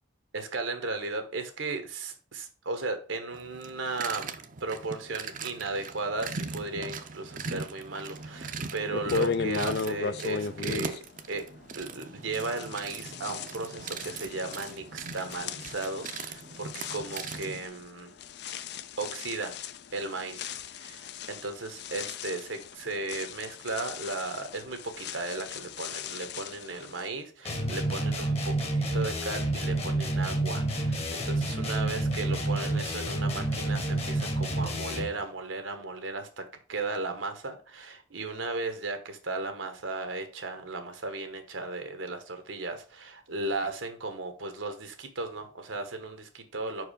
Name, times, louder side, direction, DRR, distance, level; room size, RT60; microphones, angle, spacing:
voice 1, 0.3-11.0 11.3-11.4 11.7-18.1 19.0-19.6 19.9-46.8, right 3 dB, 85° right, 1.2 m, -36 dB
sound 1, 3.3-17.7, right 4 dB, 40° right, 0.6 m, -40 dB
sound 2, 8.4-8.5 8.9-12.0 12.3-27.1, left 5 dB, 55° left, 0.4 m, -37 dB
sound 3, 27.5-35.2, right 1 dB, 30° left, 1.1 m, -29 dB
5.5 x 4.7 x 5.0 m
head